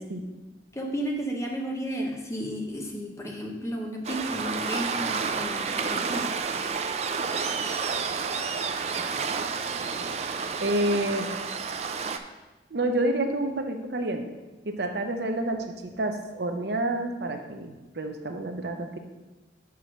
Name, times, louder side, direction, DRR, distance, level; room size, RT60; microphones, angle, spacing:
voice 1, 0.7-6.3, equal, 15° left, 0 dB, 0.8 m, -33 dB
Waves surf, 4.0-12.2, right 5 dB, 35° right, 0.4 m, -30 dB
voice 2, 10.6-11.3 12.7-14.2 14.6-19.0, right 1 dB, 65° right, 5 dB, 0.7 m, -28 dB
5.7 x 4.8 x 6.0 m, 1.1 s
head